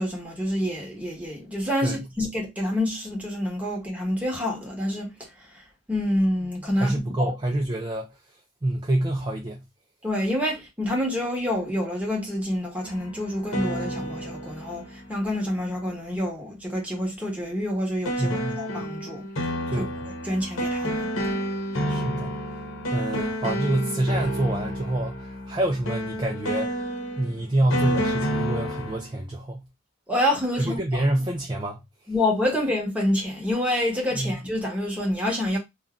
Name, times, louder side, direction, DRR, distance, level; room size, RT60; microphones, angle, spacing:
voice 1, 0.0-5.1 5.9-7.0 7.2-7.3 10.0-19.3 19.8-19.9 20.2-21.1 30.1-31.0 32.1-35.6, left 1 dB, 5° right, 0.9 m, -27 dB
voice 2, 6.7-8.1 8.6-9.6 18.2-18.6 19.7-19.9 21.9-22.4 22.9-26.7 27.2-29.6 30.6-31.8 34.1-34.4, right 1 dB, 20° right, 0.4 m, -27 dB
sound 1, 12.8-15.8 18.0-29.1, equal, 80° left, 0.8 m, -30 dB
2.6 x 2.3 x 3.5 m
head